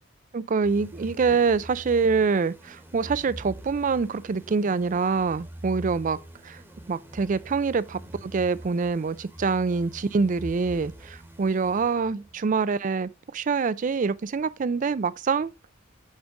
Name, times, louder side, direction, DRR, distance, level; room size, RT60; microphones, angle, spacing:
voice 1, 0.3-6.2 6.4-6.6 6.9-15.5, right 5 dB, 40° right, 0.4 m, -25 dB
sound 1, 0.6-12.4, right 1 dB, 10° right, 1.2 m, -43 dB
8.0 x 5.1 x 3.4 m
head